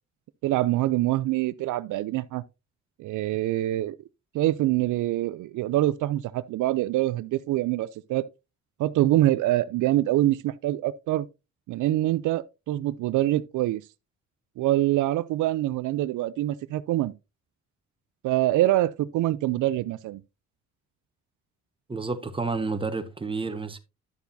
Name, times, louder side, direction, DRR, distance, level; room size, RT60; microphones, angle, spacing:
voice 1, 0.4-2.4 3.0-4.0 4.3-8.2 8.8-11.3 11.7-13.8 14.6-17.1 18.2-20.2, right 15 dB, 80° right, 0.5 m, -25 dB
voice 2, 21.9-23.8, right 4 dB, 15° right, 1.3 m, -30 dB
11.0 x 6.9 x 2.7 m
cardioid pair, 90°, 30 cm